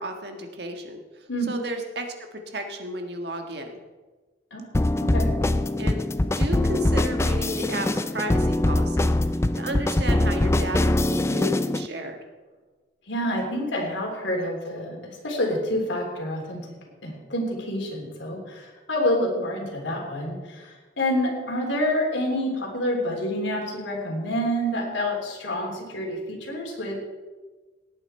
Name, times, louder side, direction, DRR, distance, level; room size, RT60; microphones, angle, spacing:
voice 1, 0.0-2.1 2.5-3.7 5.8-6.0 6.4-9.1 9.6-12.2, right 1 dB, 60° right, 4 dB, 1.6 m, -33 dB
sound 1, 4.7-11.9, left 1 dB, 15° left, 0.3 m, -23 dB
voice 2, 5.0-5.3 13.1-16.7 17.0-26.9, equal, 80° left, 0 dB, 3.4 m, -28 dB
18.0 x 9.1 x 4.4 m, 1.3 s
head